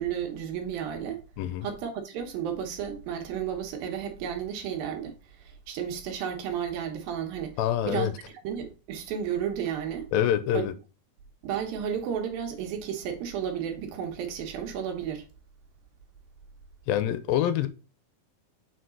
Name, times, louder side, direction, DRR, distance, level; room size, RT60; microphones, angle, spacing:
voice 1, 0.0-1.2 1.6-7.6 7.8-10.1 10.5-10.6 11.4-15.3, right 8 dB, 75° right, 3.0 m, -33 dB
voice 2, 7.6-8.1 10.1-10.7 16.9-17.7, left 10 dB, 85° left, 2.4 m, -25 dB
6.0 x 5.1 x 3.7 m
omnidirectional pair, 4.2 m